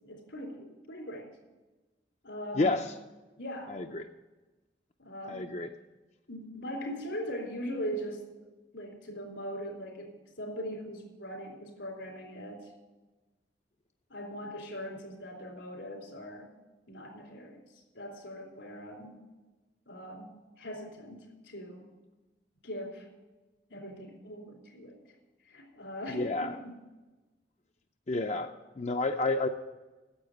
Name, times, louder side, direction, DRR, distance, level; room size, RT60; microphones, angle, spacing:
voice 1, 0.0-1.3 2.2-2.7 3.4-3.8 5.0-5.4 6.3-8.5 8.7-12.7 14.1-16.5 16.9-17.6 17.9-19.2 19.9-21.9 22.6-23.1 23.7-25.0 25.5-26.7, equal, 90° left, 1 dB, 3.7 m, -40 dB
voice 2, 3.7-4.0 5.3-5.7 26.1-26.6 28.1-29.5, left 2 dB, 40° left, 6 dB, 0.5 m, -30 dB
9.8 x 7.9 x 9.1 m, 1.2 s
head